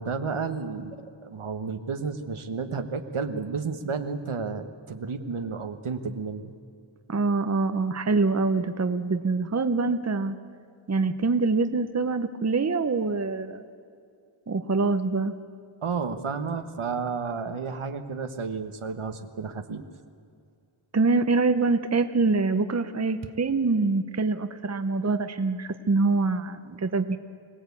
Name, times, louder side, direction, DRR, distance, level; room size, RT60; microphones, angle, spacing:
voice 1, 0.0-6.5 15.8-19.9, right 5 dB, 80° right, 7 dB, 1.4 m, -32 dB
voice 2, 7.1-10.4 10.9-13.6 14.5-15.3 20.9-27.2, right 3 dB, 30° right, 9 dB, 0.9 m, -25 dB
24.5 x 18.0 x 8.4 m, 2.4 s
wide cardioid pair, 90°, 49 cm